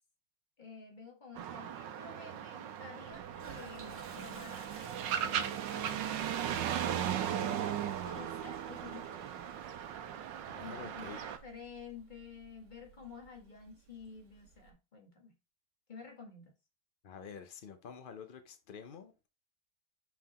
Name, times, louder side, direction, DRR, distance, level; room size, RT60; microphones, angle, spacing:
voice 1, 0.6-7.0 8.0-9.6 10.6-15.3 15.9-16.5, left 5 dB, 25° left, 1.6 m, -51 dB
sound 1, 1.4-11.4, right 9 dB, 85° right, 1.4 m, -37 dB
Toilet flush, 3.1-14.7, right 6 dB, 55° right, 1.4 m, -54 dB
voice 2, 10.5-11.2 17.0-19.3, left 6 dB, 85° left, 0.4 m, -48 dB
5.8 x 4.8 x 4.1 m
omnidirectional pair, 2.0 m